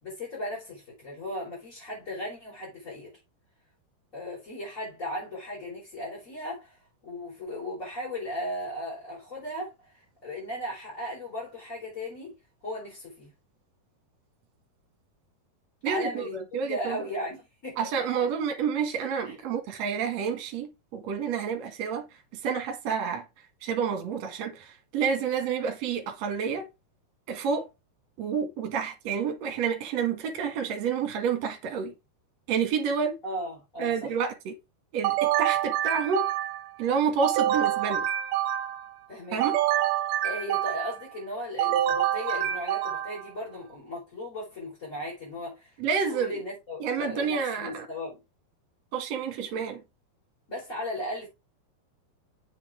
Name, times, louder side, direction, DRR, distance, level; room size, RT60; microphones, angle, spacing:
voice 1, 0.0-3.1 4.1-6.8 7.0-12.3 12.6-13.3 15.9-17.9 19.2-19.4 33.2-34.2 39.1-39.4 40.2-45.7 46.1-48.2 50.5-51.3, left 1 dB, 20° left, 4.5 m, -36 dB
voice 2, 15.8-17.0 17.8-22.0 22.4-23.2 23.6-26.7 27.3-27.7 28.2-31.9 32.5-33.2 33.8-34.6 34.9-36.3 36.8-38.1 39.3-39.6 45.8-46.4 46.8-47.9 48.9-49.8, right 6 dB, 50° right, 2.5 m, -29 dB
sound 1, 35.0-36.7 37.2-38.9 39.4-41.1 41.6-43.3, right 12 dB, 75° right, 2.1 m, -27 dB
7.4 x 6.5 x 3.6 m
omnidirectional pair, 4.6 m